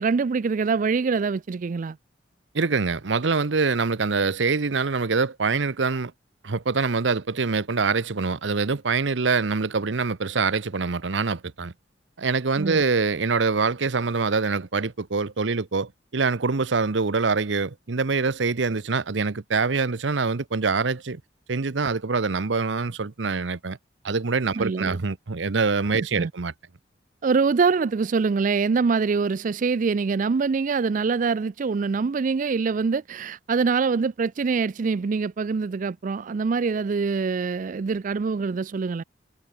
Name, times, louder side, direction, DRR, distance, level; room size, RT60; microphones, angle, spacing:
voice 1, 0.0-2.0 12.6-12.8 24.6-25.0 26.2-26.3 27.2-39.0, right 5 dB, 45° right, 0.4 m, -24 dB
voice 2, 2.5-6.1 6.4-11.7 12.2-21.2 21.5-23.8 24.0-26.5, right 4 dB, 75° right, 0.8 m, -24 dB
head